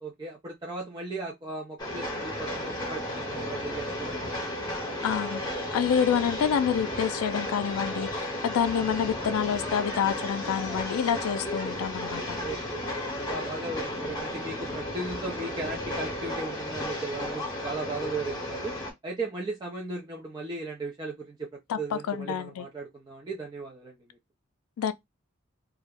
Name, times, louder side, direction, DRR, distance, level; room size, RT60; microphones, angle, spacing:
voice 1, 0.0-4.4 12.4-12.8 13.2-18.7 19.0-24.0, right 3 dB, 20° right, 0.4 m, -36 dB
Train, 1.8-18.9, left 1 dB, 20° left, 0.8 m, -34 dB
voice 2, 5.0-5.4 5.7-12.4 21.7-22.7 24.8-24.9, left 8 dB, 90° left, 0.3 m, -28 dB
2.3 x 2.0 x 3.4 m
head